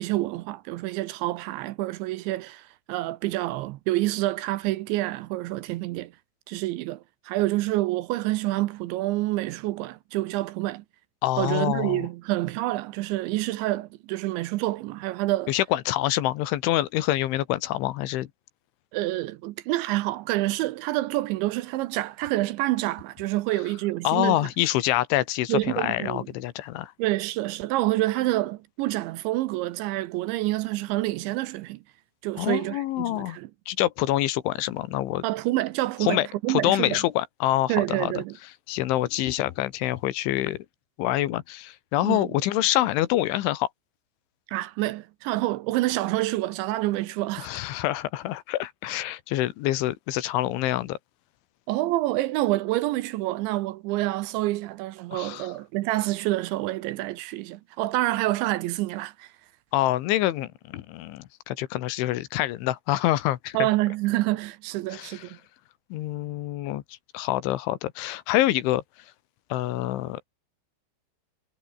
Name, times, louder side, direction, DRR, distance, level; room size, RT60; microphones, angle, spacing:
voice 1, 0.0-6.1 6.5-10.8 11.4-15.5 18.9-24.5 25.5-26.3 27.0-31.8 32.2-33.5 35.2-37.0 37.7-38.3 42.0-42.3 44.5-47.5 51.7-59.3 63.5-65.4, right 17 dB, 80° right, 2.9 m, -27 dB
voice 2, 11.2-12.1 15.5-18.3 24.0-26.9 32.4-33.4 33.7-35.2 36.0-38.1 38.7-40.7 41.0-43.7 47.4-51.0 55.1-55.5 59.7-63.7 64.9-65.3 65.9-66.8 67.1-68.8 69.5-70.2, left 15 dB, 80° left, 3.6 m, -26 dB
omnidirectional pair, 5.7 m